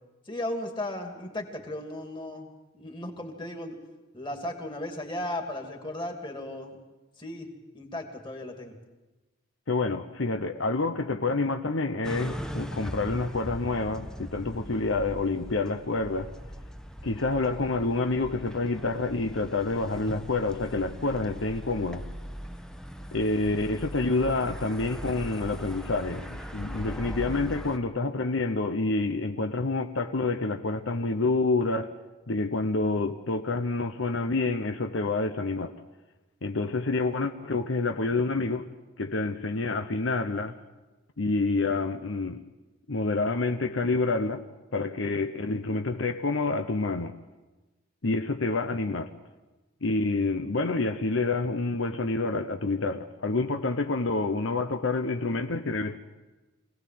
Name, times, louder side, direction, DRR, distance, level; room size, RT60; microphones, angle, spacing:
voice 1, 0.3-2.5 2.7-3.8 4.1-6.8 7.2-7.5 7.7-8.7, left 1 dB, 25° left, 3 dB, 2.7 m, -35 dB
voice 2, 9.7-16.3 17.0-22.0 23.1-31.9 32.3-35.7 36.4-38.7 39.0-40.6 41.2-42.4 42.9-44.4 44.7-47.1 48.0-49.1 49.8-56.0, left 3 dB, 75° left, 7 dB, 0.9 m, -28 dB
sound 1, 12.0-27.8, equal, 5° left, 1.0 m, -40 dB
25.0 x 18.0 x 7.7 m, 1.2 s
head